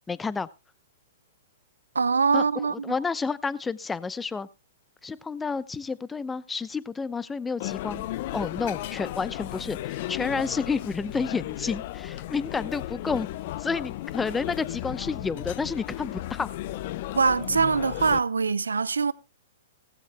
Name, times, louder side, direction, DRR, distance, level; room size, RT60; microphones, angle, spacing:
voice 1, 0.1-0.5 2.3-4.5 5.0-8.0 8.3-13.3 13.6-16.5, left 4 dB, 10° left, 0.8 m, -30 dB
voice 2, 1.9-2.9 17.2-19.1, right 5 dB, 90° right, 0.7 m, -23 dB
sound 1, 7.6-18.2, left 15 dB, 50° left, 0.6 m, -35 dB
17.5 x 15.5 x 2.2 m
hypercardioid pair, 120°, 0 cm